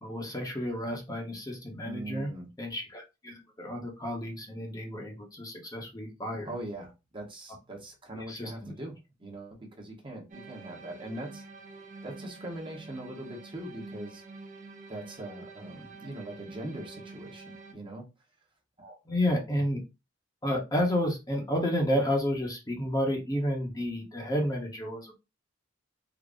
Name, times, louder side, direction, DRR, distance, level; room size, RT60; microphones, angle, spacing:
voice 1, 0.0-2.3 2.6-6.5 8.1-8.7 19.1-19.8 20.4-25.2, equal, 20° left, 0.8 m, -31 dB
voice 2, 1.8-2.5 6.4-11.4 12.0-14.2 14.9-18.1 18.8-19.0, right 1 dB, 25° right, 1.0 m, -41 dB
sound 1, 10.3-17.7, right 3 dB, 40° right, 0.6 m, -48 dB
3.8 x 2.0 x 3.5 m
head